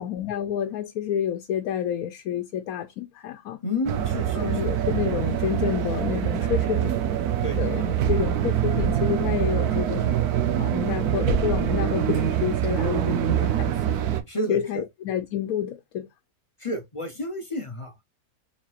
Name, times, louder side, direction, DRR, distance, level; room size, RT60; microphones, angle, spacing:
voice 1, 0.0-3.6 4.3-7.2 7.6-10.1 10.6-14.0 14.5-16.1, left 9 dB, 75° left, 1.1 m, -29 dB
voice 2, 3.6-4.7 7.4-7.6 11.7-11.9 14.3-14.8 16.6-17.9, left 1 dB, 35° left, 0.5 m, -31 dB
sound 1, 3.9-14.2, right 9 dB, 85° right, 1.2 m, -24 dB
4.2 x 4.1 x 2.4 m
omnidirectional pair, 1.6 m